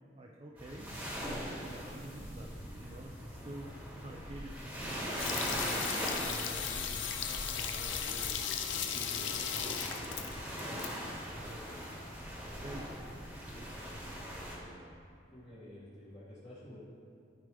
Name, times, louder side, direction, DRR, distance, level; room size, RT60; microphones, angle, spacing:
voice 1, 0.2-8.4 8.7-10.8 11.2-12.9 13.3-14.1 14.5-15.0, right 1 dB, 30° right, -1 dB, 0.5 m, -50 dB
sound 1, 0.6-14.6, equal, 10° right, 1.3 m, -41 dB
sound 2, 5.2-10.9 11.1-11.2, left 8 dB, 85° left, 0.6 m, -36 dB
voice 2, 15.3-16.8, left 1 dB, 30° left, -11 dB, 1.5 m, -50 dB
12.5 x 4.6 x 3.4 m, 2.4 s
head